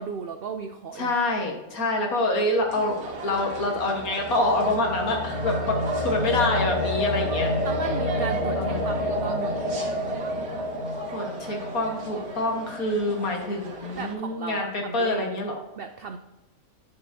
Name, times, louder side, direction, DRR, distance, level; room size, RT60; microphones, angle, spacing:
voice 1, 0.0-1.1 6.0-6.5 7.6-9.8 14.0-15.2 15.8-16.2, right 5 dB, 65° right, 6 dB, 0.6 m, -36 dB
voice 2, 0.9-3.0 3.2-7.5 8.6-9.0 11.1-15.6, left 2 dB, 70° left, 1 dB, 1.9 m, -26 dB
sound 1, 2.7-14.1, right 4 dB, 90° right, 1.8 m, -39 dB
sound 2, 3.1-13.3, left 1 dB, 20° right, 2.6 m, -29 dB
10.5 x 6.7 x 2.7 m, 1.1 s
omnidirectional pair, 1.5 m